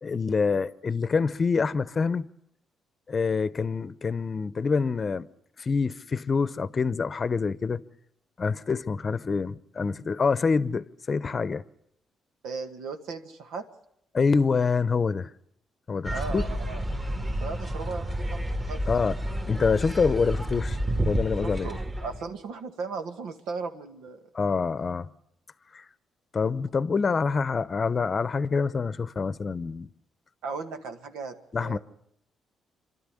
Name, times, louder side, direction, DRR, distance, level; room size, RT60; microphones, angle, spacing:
voice 1, 0.0-2.3 3.1-5.3 5.6-7.8 8.4-11.6 14.1-15.3 15.9-16.4 18.9-19.2 19.5-20.8 21.0-21.7 24.3-25.1 25.7-25.8 26.3-29.9 31.5-31.8, left 5 dB, 35° left, 0.8 m, -26 dB
voice 2, 12.4-13.6 16.1-16.8 17.1-18.8 21.4-24.2 30.4-31.8, right 4 dB, 90° right, 1.9 m, -37 dB
sound 1, 16.0-22.3, equal, 25° right, 2.5 m, -30 dB
26.5 x 12.5 x 9.9 m
cardioid pair, 90°, 0 cm